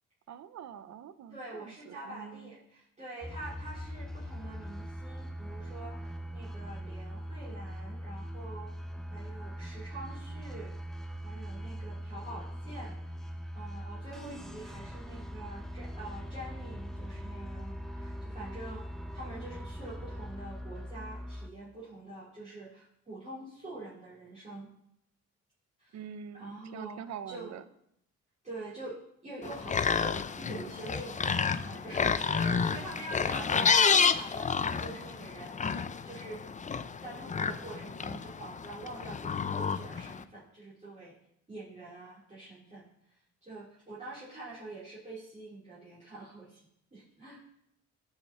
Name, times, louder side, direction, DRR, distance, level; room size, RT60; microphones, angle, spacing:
voice 1, 0.3-2.6 25.9-27.6, right 8 dB, 60° right, 13 dB, 0.8 m, -45 dB
voice 2, 1.3-8.7 9.1-10.7 11.2-13.1 13.5-18.8 19.1-24.7 25.8-26.0 26.3-27.0 27.3-27.6 28.4-36.4 37.0-41.1 41.5-46.6 46.9-47.4, right 2 dB, 25° right, -11 dB, 4.3 m, -45 dB
sound 1, 3.2-21.5, equal, ahead, 1.0 m, -41 dB
sound 2, 29.4-40.2, left 5 dB, 25° left, 0.5 m, -30 dB
17.0 x 5.8 x 4.5 m, 0.75 s
cardioid pair, 90°, 30 cm